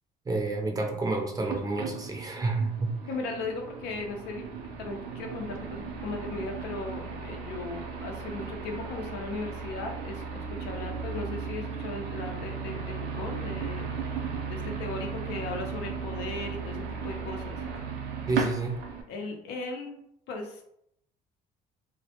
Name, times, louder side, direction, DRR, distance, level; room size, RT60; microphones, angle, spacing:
voice 1, 0.3-2.9 18.3-18.8, right 2 dB, 20° right, 2 dB, 0.5 m, -29 dB
sound 1, 1.5-19.0, right 6 dB, 80° right, 0.5 m, -36 dB
voice 2, 3.1-4.5 4.8-17.6 19.1-20.6, left 3 dB, 85° left, 2 dB, 0.5 m, -37 dB
2.1 x 2.1 x 2.8 m, 0.74 s
cardioid pair, 110°, 17 cm